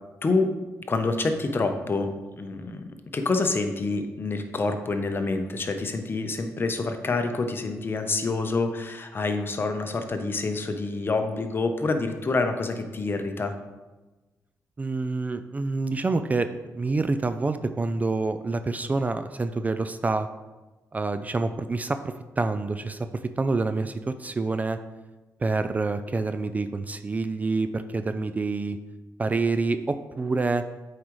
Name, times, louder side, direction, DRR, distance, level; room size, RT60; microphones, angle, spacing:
voice 1, 0.2-0.5 0.9-2.8 3.1-13.5, left 3 dB, 35° left, 6 dB, 0.8 m, -27 dB
voice 2, 14.8-20.3 20.9-24.8 25.4-28.8 29.2-30.6, right 3 dB, 25° right, 10 dB, 0.3 m, -27 dB
8.1 x 4.9 x 3.1 m, 1.1 s
cardioid pair, 80°, 6 cm